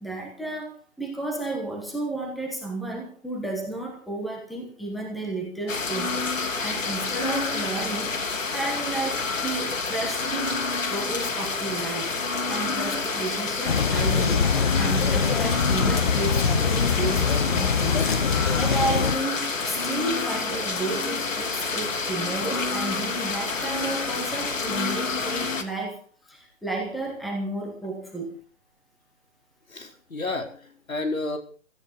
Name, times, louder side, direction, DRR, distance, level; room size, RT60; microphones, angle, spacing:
voice 1, 0.0-10.6 10.9-12.1 12.5-18.1 18.5-28.3, right 2 dB, ahead, 1 dB, 1.2 m, -32 dB
sound 1, 5.7-25.6, left 4 dB, 70° left, 3.1 m, -28 dB
sound 2, 13.7-19.1, left 6 dB, 40° left, 1.3 m, -23 dB
voice 2, 29.7-31.4, left 2 dB, 85° left, 5 dB, 4.9 m, -31 dB
17.0 x 14.0 x 5.5 m, 0.40 s
hypercardioid pair, 160°, 40 cm